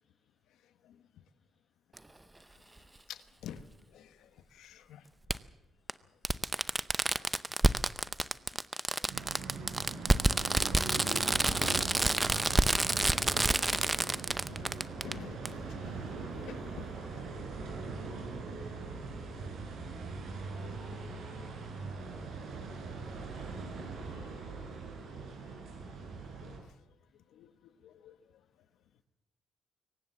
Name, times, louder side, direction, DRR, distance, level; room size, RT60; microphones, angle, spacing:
Fireworks, 2.0-2.1 3.6-3.7 5.3-5.4 5.9-6.0 6.2-15.1 15.4-15.5, right 2 dB, 15° right, 0.7 m, -28 dB
voice 1, 3.1-3.7 3.9-5.0 7.0-7.3 9.0-9.1 11.4-14.7 15.0-15.6 16.5-17.6 23.6-23.9 26.4-26.7 27.3-28.2, left 10 dB, 80° left, 13 dB, 1.2 m, -50 dB
sound 1, 9.1-26.6, right 4 dB, 70° right, 7.4 m, -41 dB
voice 2, 16.3-17.2, left 3 dB, 45° left, 0 dB, 5.5 m, -71 dB
23.0 x 18.5 x 7.4 m, 0.89 s
cardioid pair, 90°, 0 cm